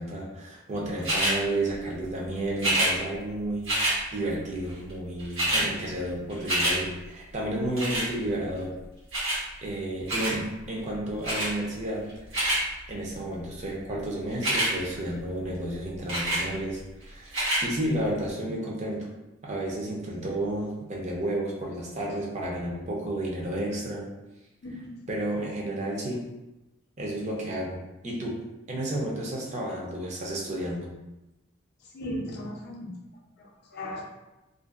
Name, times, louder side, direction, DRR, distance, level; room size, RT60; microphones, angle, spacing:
voice 1, 0.0-3.7 4.1-8.7 9.6-12.1 12.9-19.1 19.4-24.1 25.1-26.2 27.0-27.8 28.0-28.4 28.7-30.9, right 1 dB, 35° right, -3 dB, 0.5 m, -31 dB
sound 1, 1.0-1.4 2.6-2.9 3.6-4.0 4.9-5.0 5.2-5.7 6.0-6.8 7.8-8.1 9.1-9.4 10.1-10.4 11.2-11.5 12.1-12.6 14.3-14.7 16.1-16.4 17.3-17.6 18.3-18.4, right 1 dB, 80° right, 1.1 m, -26 dB
voice 2, 24.6-25.1 31.9-32.9 33.4-34.0, left 1 dB, 55° left, -1 dB, 0.5 m, -37 dB
2.5 x 2.2 x 2.4 m, 0.98 s
head